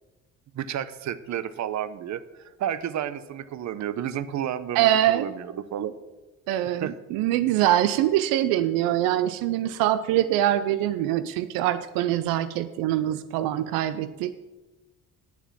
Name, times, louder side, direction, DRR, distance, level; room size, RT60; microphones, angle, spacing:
voice 1, 0.5-5.9 6.8-6.9, right 10 dB, 55° right, 15 dB, 0.8 m, -31 dB
voice 2, 4.8-5.3 6.5-14.3, right 12 dB, 90° right, 13 dB, 0.5 m, -24 dB
10.0 x 6.9 x 7.4 m, 1.1 s
supercardioid pair, 75°, 34 cm